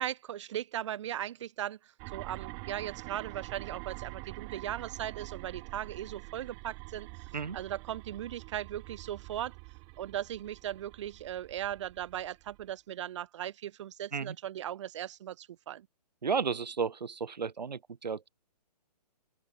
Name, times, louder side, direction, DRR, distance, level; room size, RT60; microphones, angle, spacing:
voice 1, 0.0-9.5 10.0-15.9, right 11 dB, 45° right, 6.7 m, -38 dB
sound 1, 2.0-12.7, right 34 dB, 25° right, 5.7 m, -46 dB
voice 2, 16.2-18.3, right 5 dB, 80° right, 5.1 m, -33 dB
open air
hypercardioid pair, 155°, 21 cm